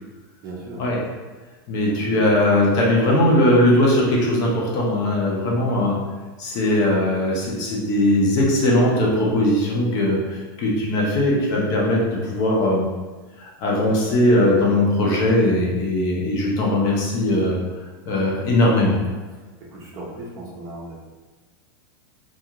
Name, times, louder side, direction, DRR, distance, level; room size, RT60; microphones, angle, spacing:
voice 1, 0.4-0.9 1.9-2.4 19.3-21.0, right 2 dB, 25° right, -5 dB, 0.6 m, -37 dB
voice 2, 1.7-6.0 6.4-12.9 13.4-17.6 18.1-19.0, left 1 dB, 30° left, -3 dB, 0.6 m, -19 dB
2.4 x 2.4 x 2.9 m, 1.3 s
supercardioid pair, 160°, 13 cm